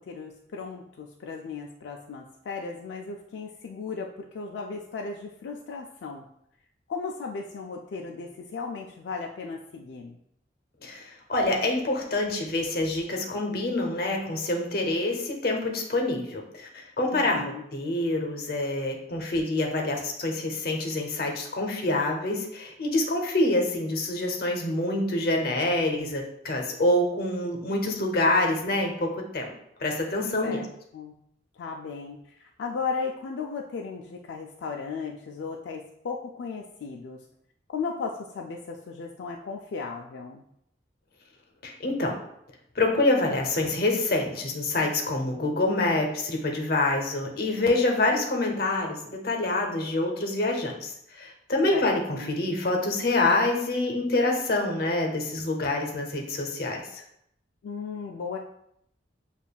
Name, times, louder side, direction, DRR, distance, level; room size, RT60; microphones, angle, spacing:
voice 1, 0.0-6.2 6.9-10.2 17.1-17.7 30.4-30.7 30.9-31.1 31.5-37.2 37.7-40.4 51.7-52.4 57.6-58.4, left 5 dB, 80° left, 1 dB, 0.3 m, -36 dB
voice 2, 10.8-29.5 29.8-30.6 41.6-42.1 42.8-57.0, left 2 dB, 55° left, 1 dB, 0.7 m, -26 dB
6.9 x 2.4 x 2.3 m, 0.75 s
head